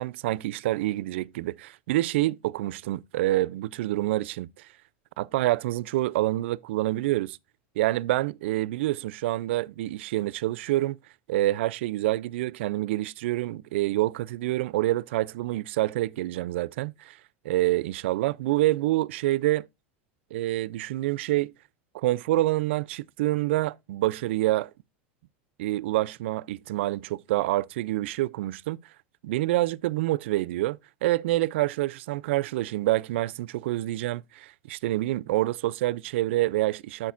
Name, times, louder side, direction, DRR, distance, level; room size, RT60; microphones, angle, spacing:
voice 1, 0.0-4.7 5.2-7.4 7.8-11.0 11.3-17.2 17.4-19.7 20.3-21.5 21.9-24.7 25.6-28.8 29.2-37.1, right 16 dB, 80° right, 0.4 m, -27 dB
10.5 x 7.6 x 2.4 m
supercardioid pair, 160°, 6 cm